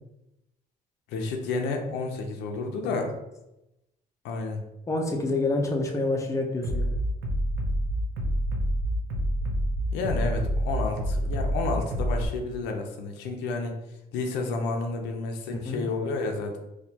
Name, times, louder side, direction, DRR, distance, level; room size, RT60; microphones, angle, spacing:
voice 1, 1.1-3.1 4.2-4.6 9.9-13.8 14.1-16.6, left 3 dB, 90° left, 3 dB, 0.6 m, -30 dB
voice 2, 4.9-6.9 15.5-15.8, left 2 dB, 20° left, 1 dB, 0.6 m, -28 dB
Bass drum, 6.6-12.3, equal, 80° right, 0.7 m, -27 dB
4.3 x 2.3 x 2.8 m, 0.92 s
cardioid pair, 110°, 17 cm